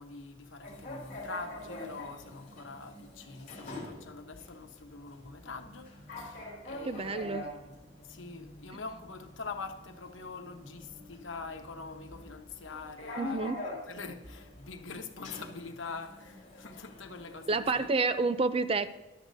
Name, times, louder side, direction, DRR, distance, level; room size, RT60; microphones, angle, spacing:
voice 1, 0.0-5.9 6.2-13.6 13.9-17.9, left 4 dB, 80° left, 6 dB, 1.0 m, -44 dB
sound 1, 0.6-18.1, left 2 dB, 40° left, 3.0 m, -46 dB
voice 2, 6.9-7.5 13.2-13.7 17.5-18.9, right 3 dB, 30° right, 13 dB, 0.4 m, -29 dB
14.0 x 11.5 x 2.7 m, 1.1 s
head